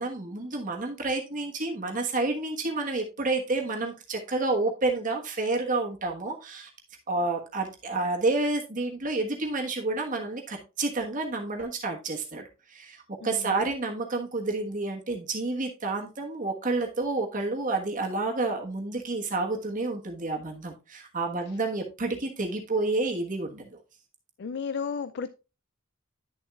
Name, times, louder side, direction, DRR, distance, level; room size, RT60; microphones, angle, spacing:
voice 1, 0.0-6.7 7.1-23.7, right 3 dB, 40° right, 1 dB, 1.3 m, -29 dB
voice 2, 13.2-13.6 24.4-25.3, left 6 dB, 55° left, 13 dB, 0.4 m, -33 dB
10.5 x 7.1 x 2.3 m, 0.30 s
head